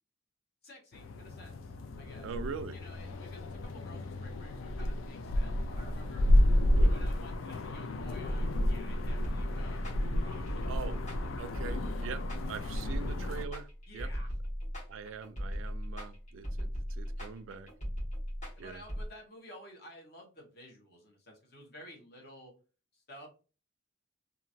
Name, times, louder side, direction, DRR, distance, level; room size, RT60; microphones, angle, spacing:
voice 1, 0.6-2.3 2.7-6.3 6.9-9.8 10.2-10.7 13.9-14.3 18.6-22.5 22.9-23.3, equal, 55° left, 1.2 m, -53 dB
sound 1, 0.9-13.4, left 1 dB, 85° left, 0.4 m, -31 dB
voice 2, 2.2-2.8 6.7-7.0 10.7-11.0 11.4-12.2 12.5-14.1 14.9-17.7 18.6-18.8, right 6 dB, 85° right, 0.4 m, -43 dB
sound 2, 9.2-19.0, equal, 40° left, 1.4 m, -37 dB
2.8 x 2.5 x 2.7 m
head